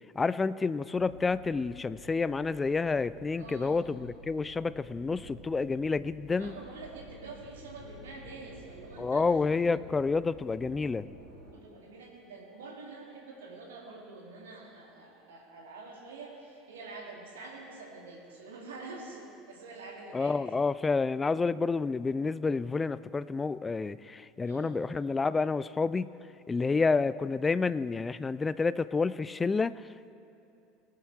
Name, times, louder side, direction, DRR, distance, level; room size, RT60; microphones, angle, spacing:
voice 1, 0.1-6.5 9.0-11.1 20.1-26.1 26.5-30.1, left 4 dB, 20° left, 17 dB, 0.3 m, -29 dB
sound 1, 0.9-11.5, equal, 90° left, 2.8 m, -51 dB
voice 2, 3.4-3.8 6.4-9.3 11.5-20.4 24.3-24.8, right 3 dB, 65° right, -1 dB, 2.2 m, -46 dB
19.5 x 7.6 x 4.7 m, 2.7 s
figure-of-eight pair, 70°, 0 cm